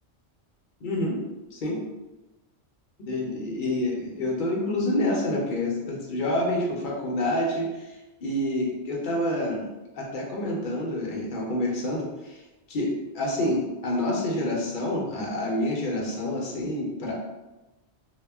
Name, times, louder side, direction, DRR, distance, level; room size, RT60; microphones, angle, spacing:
voice 1, 0.8-1.2 1.5-1.8 3.0-7.9 8.2-9.7 9.9-12.4 12.7-17.1, left 1 dB, 55° left, -2 dB, 0.7 m, -28 dB
2.1 x 2.1 x 3.3 m, 1.0 s
omnidirectional pair, 1.1 m